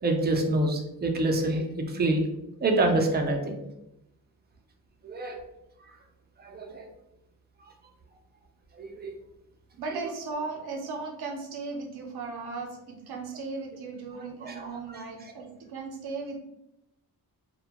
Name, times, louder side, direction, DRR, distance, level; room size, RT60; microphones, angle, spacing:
voice 1, 0.0-2.3 2.6-3.6 5.0-5.4 6.4-6.9 8.8-9.1 14.4-14.7, right 2 dB, 30° right, 3 dB, 0.3 m, -26 dB
voice 2, 9.8-16.4, right 4 dB, 85° right, 2 dB, 0.6 m, -36 dB
2.1 x 2.1 x 2.8 m, 0.86 s
wide cardioid pair, 125°, 37 cm